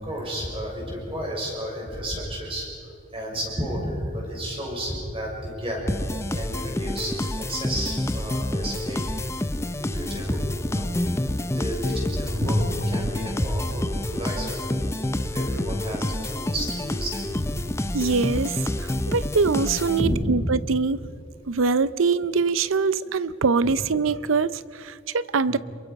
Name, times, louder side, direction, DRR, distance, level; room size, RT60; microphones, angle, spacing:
voice 1, 0.0-5.8 6.3-14.7 15.2-17.6 20.0-20.4 23.6-23.7 25.5-25.6, equal, 30° right, -1 dB, 6.2 m, -31 dB
sound 1, 5.9-20.4, left 1 dB, 15° left, 0.6 m, -28 dB
voice 2, 17.9-21.0 21.5-25.6, right 4 dB, 85° right, 17 dB, 0.6 m, -23 dB
27.5 x 23.0 x 5.3 m, 2.6 s
head